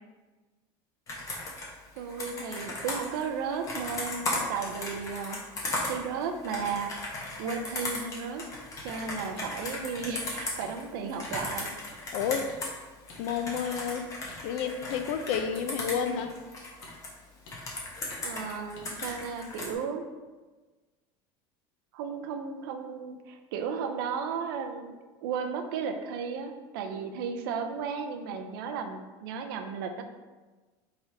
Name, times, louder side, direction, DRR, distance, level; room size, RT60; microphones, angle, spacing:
Computer keyboard, 1.1-12.8 13.1-17.1 17.5-19.7, left 2 dB, 30° left, 1.0 m, -36 dB
voice 1, 2.0-5.4 5.9-6.9 7.4-8.4 8.8-11.8 18.2-20.1 21.9-30.0, right 6 dB, 90° right, 6 dB, 0.5 m, -34 dB
sound 1, 9.4-9.5 10.0-10.1 10.6-10.7 11.2-11.4 11.9-12.0 12.5-12.6 13.1-13.2 13.7-13.8 14.3-14.4 14.9-15.0 15.6-15.7 16.2-16.3 16.8-16.9 17.5-17.6 18.1-18.2 18.8-18.9, left 2 dB, 85° left, 1.1 m, -50 dB
voice 2, 12.1-12.5 13.2-14.1 14.4-16.3, left 7 dB, 65° left, 8 dB, 0.5 m, -30 dB
4.5 x 4.0 x 2.7 m, 1.3 s
cardioid pair, 150°, 11 cm